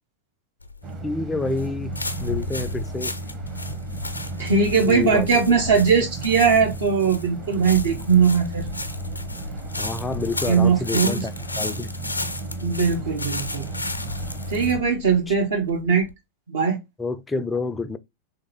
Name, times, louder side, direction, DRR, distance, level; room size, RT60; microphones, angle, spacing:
sound 1, 0.6-16.1, left 2 dB, 80° left, 0.5 m, -33 dB
sound 2, 0.8-14.8, right 3 dB, 25° right, 0.7 m, -35 dB
voice 1, 1.0-2.0 2.2-3.1 4.9-5.3 5.7-5.8 9.8-11.9 15.3-15.4 17.0-18.0, left 3 dB, 10° left, 0.3 m, -28 dB
voice 2, 4.4-8.7 10.5-11.3 12.6-13.7 14.5-16.1 16.5-16.8, right 5 dB, 65° right, 0.6 m, -20 dB
3.4 x 2.6 x 3.9 m
figure-of-eight pair, 90°, 0 cm